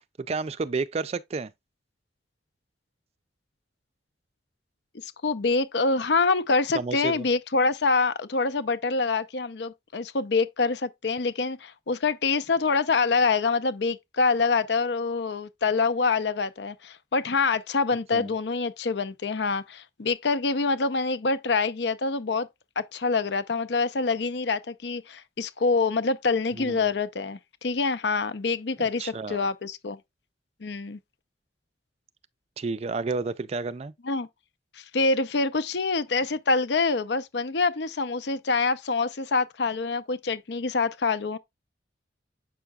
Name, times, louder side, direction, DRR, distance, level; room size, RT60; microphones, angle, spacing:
voice 1, 0.3-1.5 6.7-7.3 18.1-18.3 26.6-26.9 29.0-29.5 32.6-33.9, right 4 dB, 35° right, 0.3 m, -31 dB
voice 2, 5.0-22.5 22.8-30.0 30.6-31.0 34.0-34.3 34.7-41.4, left 4 dB, 70° left, 0.6 m, -26 dB
7.4 x 5.7 x 2.3 m
head